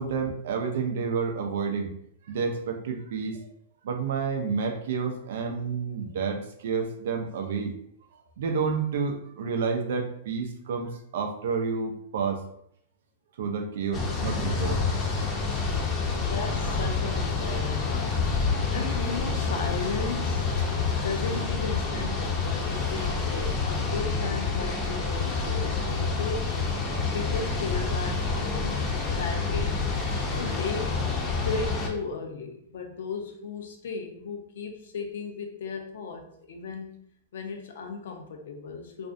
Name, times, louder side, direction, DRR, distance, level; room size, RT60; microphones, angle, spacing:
voice 1, 0.0-1.9 2.2-3.5 3.8-7.8 8.4-12.4 13.4-14.8 20.6-20.7, right 5 dB, 70° right, 3 dB, 0.4 m, -30 dB
sound 1, 13.9-31.9, left 4 dB, 25° left, 0.6 m, -28 dB
voice 2, 16.1-20.5 21.0-26.6 27.1-28.8 29.1-29.9 30.3-31.1 31.4-37.0 37.3-39.1, left 4 dB, 70° left, 3 dB, 0.5 m, -36 dB
2.5 x 2.1 x 2.5 m, 0.69 s
hypercardioid pair, 115°, 0 cm